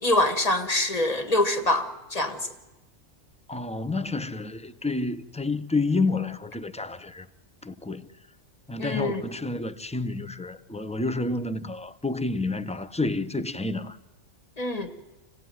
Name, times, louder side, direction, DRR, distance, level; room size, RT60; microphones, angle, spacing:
voice 1, 0.0-2.4 8.8-9.2 14.6-14.9, left 1 dB, 30° left, 1.9 m, -25 dB
voice 2, 3.5-7.3 7.6-8.2 8.7-14.0, left 3 dB, 5° left, 0.7 m, -29 dB
26.5 x 18.0 x 9.3 m
omnidirectional pair, 1.2 m